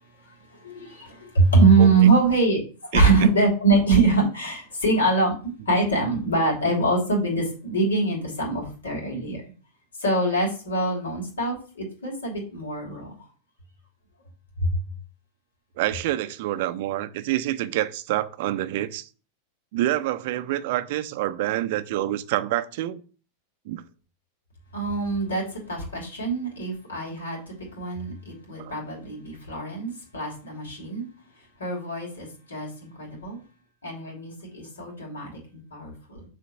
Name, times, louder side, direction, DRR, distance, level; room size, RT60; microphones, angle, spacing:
voice 1, 0.6-9.4 10.0-13.1 14.6-14.7 24.7-27.4 27.7-31.1 31.6-33.4 33.8-36.2, right 3 dB, 70° left, 3.3 m, -23 dB
voice 2, 1.8-2.1 2.9-3.0 15.8-19.1 19.7-23.0 23.7-23.8 28.6-28.7, right 14 dB, 50° right, 0.6 m, -27 dB
6.8 x 3.8 x 6.3 m
figure-of-eight pair, 90°, 0 cm